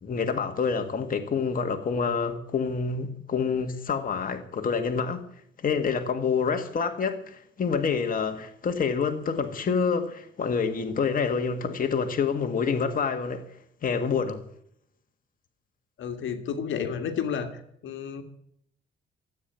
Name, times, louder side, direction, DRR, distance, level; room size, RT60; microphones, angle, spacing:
voice 1, 0.0-5.3 5.6-13.5 13.8-14.4, left 5 dB, 45° left, 1.8 m, -27 dB
voice 2, 16.0-18.2, left 7 dB, 75° left, 1.9 m, -31 dB
14.0 x 8.6 x 9.1 m
cardioid pair, 90°, 20 cm